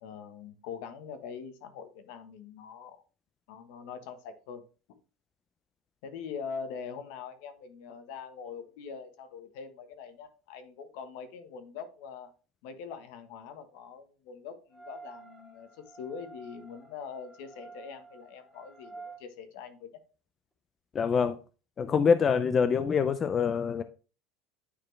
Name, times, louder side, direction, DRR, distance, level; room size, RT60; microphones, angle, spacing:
voice 1, 0.0-3.0 3.5-4.6 6.0-12.3 12.6-15.7 16.0-19.9, left 6 dB, 75° left, 1.3 m, -43 dB
sound 1, 14.7-19.2, right 4 dB, 5° left, 2.3 m, -50 dB
voice 2, 20.9-21.4 21.8-23.8, left 6 dB, 30° left, 0.5 m, -25 dB
9.7 x 4.3 x 3.2 m
supercardioid pair, 135°, 0 cm